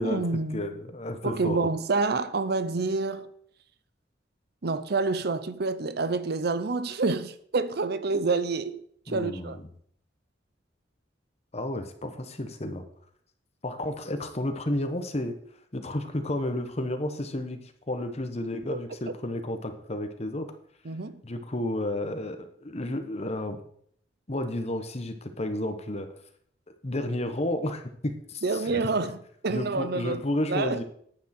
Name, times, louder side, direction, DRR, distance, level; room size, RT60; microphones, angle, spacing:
voice 1, 0.0-0.7 1.2-3.3 4.6-9.6 20.8-21.2 28.4-30.2 30.5-30.8, right 3 dB, 60° right, 0.7 m, -28 dB
voice 2, 0.5-1.7 9.1-9.6 11.5-12.8 13.6-15.3 15.7-17.6 17.9-20.5 21.2-23.6 24.3-26.1 26.8-28.8 29.5-30.8, left 1 dB, 35° left, 1.2 m, -31 dB
10.0 x 9.2 x 4.5 m
head